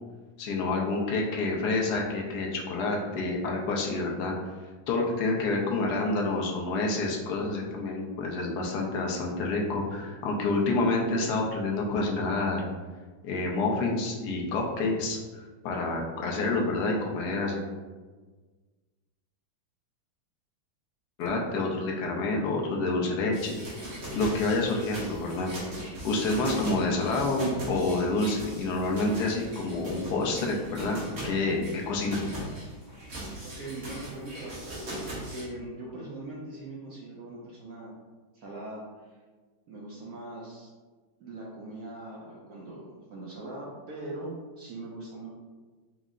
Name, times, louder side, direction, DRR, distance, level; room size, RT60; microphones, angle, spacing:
voice 1, 0.4-4.3 4.9-12.7 13.2-15.2 15.6-17.6 21.2-23.6 24.1-25.5 26.0-32.2, left 2 dB, 70° left, 0 dB, 1.0 m, -28 dB
sound 1, 23.3-35.5, right 1 dB, 50° right, 1.1 m, -39 dB
voice 2, 33.4-34.8 35.3-37.9 38.3-39.1 39.7-40.7 41.2-45.3, right 2 dB, 70° right, -4 dB, 0.9 m, -41 dB
4.5 x 2.0 x 3.6 m, 1.3 s
omnidirectional pair, 2.2 m